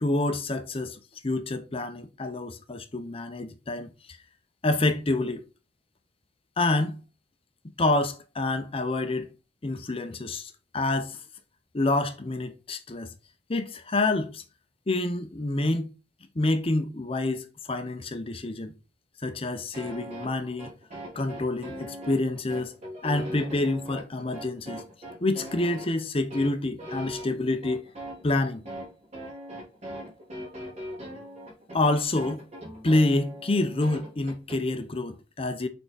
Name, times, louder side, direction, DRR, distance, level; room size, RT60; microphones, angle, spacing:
voice 1, 0.0-4.2 4.6-5.4 6.6-7.0 7.8-9.3 9.6-11.2 11.7-13.1 13.5-14.4 14.9-15.9 16.4-18.7 19.2-20.7 21.2-22.7 23.0-24.8 25.2-27.8 28.2-28.6 31.7-32.4 32.8-35.7, left 2 dB, 30° left, 0.6 m, -27 dB
sound 1, 19.7-34.6, equal, 35° right, 3.0 m, -40 dB
6.5 x 4.6 x 3.9 m
head